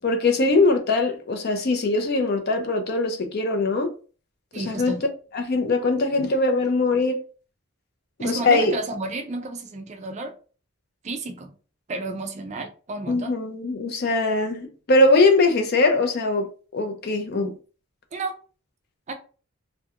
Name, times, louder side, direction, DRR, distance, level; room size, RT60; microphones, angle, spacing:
voice 1, 0.0-3.9 4.6-4.9 5.3-7.2 8.2-8.7 13.1-16.5 16.7-17.5, left 2 dB, 45° left, 0.4 m, -21 dB
voice 2, 4.5-5.0 8.2-10.3 11.0-11.5 11.9-13.3 18.1-18.4 19.1-19.2, right 2 dB, 30° right, 0.3 m, -31 dB
2.4 x 2.2 x 2.7 m
head